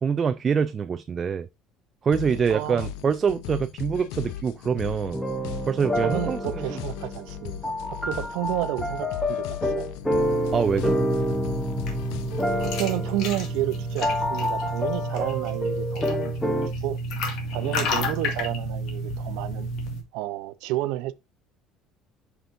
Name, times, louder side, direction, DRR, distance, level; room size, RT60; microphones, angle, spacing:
voice 1, 0.0-1.5 2.0-5.2 5.7-6.8 10.5-11.0, right 6 dB, 25° right, 0.3 m, -25 dB
sound 1, 2.1-12.8, left 11 dB, 85° left, 0.5 m, -37 dB
voice 2, 2.5-2.9 6.0-9.9 12.6-17.0 17.5-19.7 20.1-21.1, right 16 dB, 80° right, 0.6 m, -31 dB
sound 2, 5.1-16.7, equal, 5° left, 0.8 m, -28 dB
sound 3, 10.0-20.0, equal, 60° left, 1.9 m, -31 dB
7.9 x 5.8 x 2.6 m
cardioid pair, 170°, 0 cm